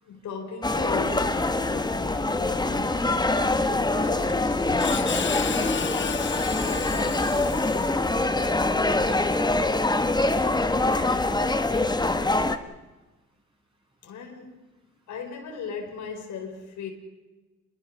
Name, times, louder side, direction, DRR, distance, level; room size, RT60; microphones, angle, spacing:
voice 1, 0.0-4.8 5.1-7.7 14.0-14.6 15.1-16.9, left 5 dB, 75° left, 4.6 m, -39 dB
sound 1, 0.6-12.6, left 2 dB, 15° left, 1.3 m, -24 dB
Screech, 4.0-8.3, left 7 dB, 40° left, 0.9 m, -34 dB
voice 2, 8.4-9.5 10.2-11.8, right 2 dB, 15° right, 7.7 m, -43 dB
27.0 x 21.5 x 6.5 m
cardioid pair, 90°, 30 cm